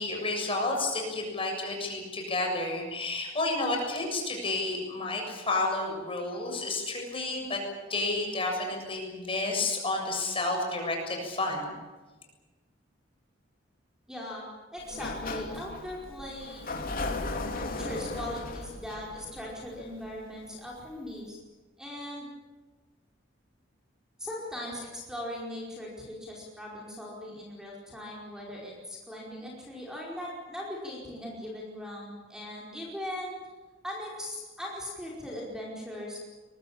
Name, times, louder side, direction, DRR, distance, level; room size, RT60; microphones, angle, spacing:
voice 1, 0.0-7.6 7.9-11.8, left 2 dB, 30° left, 1 dB, 7.4 m, -31 dB
voice 2, 14.1-14.5 14.7-16.7 17.6-21.4 21.8-22.3 24.2-33.3 33.8-36.2, left 1 dB, 5° right, -4 dB, 4.9 m, -39 dB
Sliding door, 14.8-20.5, left 2 dB, 50° left, 3.1 m, -36 dB
23.0 x 22.5 x 8.8 m, 1.3 s
head